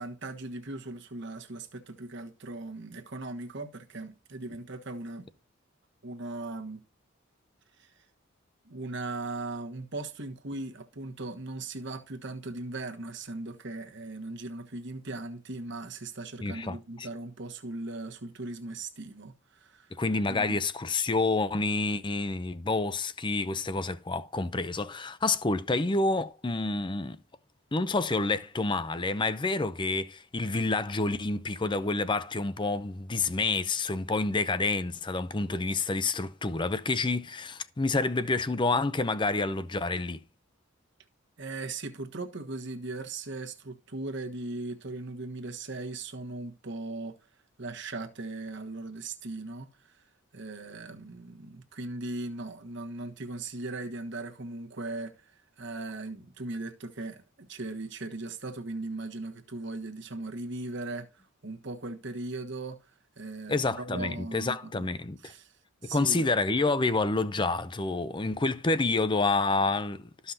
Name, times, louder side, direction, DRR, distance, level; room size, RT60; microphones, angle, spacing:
voice 1, 0.0-5.3 6.0-6.8 7.8-8.0 8.6-20.0 20.3-20.6 41.4-47.2 47.6-50.0 50.3-64.9 65.2-65.5 65.8-66.3, right 2 dB, 60° right, 1.3 m, -38 dB
voice 2, 16.4-17.1 20.0-27.2 27.7-40.2 63.5-65.3 65.8-70.3, left 3 dB, 25° left, 0.6 m, -28 dB
14.0 x 5.6 x 2.8 m
head